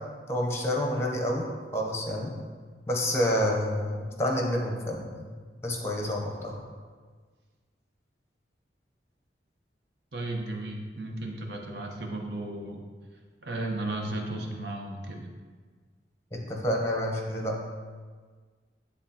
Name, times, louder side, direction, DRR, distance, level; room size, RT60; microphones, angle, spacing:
voice 1, 0.3-1.4 1.7-2.3 2.9-5.2 5.6-6.6 16.3-17.6, equal, 15° left, 0 dB, 0.7 m, -28 dB
voice 2, 10.1-12.8 13.4-15.3, right 2 dB, 65° right, 2 dB, 0.8 m, -34 dB
9.5 x 3.5 x 2.8 m, 1.5 s
head